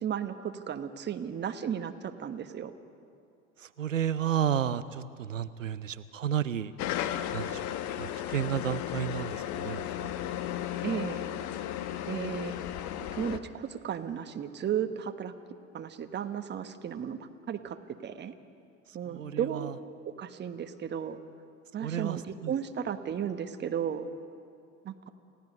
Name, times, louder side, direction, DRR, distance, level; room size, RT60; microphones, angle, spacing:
voice 1, 0.0-2.7 10.8-11.2 12.1-12.6 13.1-15.3 15.7-17.8 18.0-18.3 18.9-19.7 20.0-21.2 21.7-24.1 24.8-25.1, right 8 dB, 30° right, 8 dB, 1.3 m, -34 dB
voice 2, 3.6-6.7 7.3-7.7 8.0-10.1 19.1-19.7 21.8-22.5, right 9 dB, 90° right, 15 dB, 0.7 m, -32 dB
sound 1, 6.8-13.4, left 11 dB, 50° left, 1.1 m, -34 dB
29.0 x 16.5 x 5.4 m, 2.3 s
hypercardioid pair, 80°, 38 cm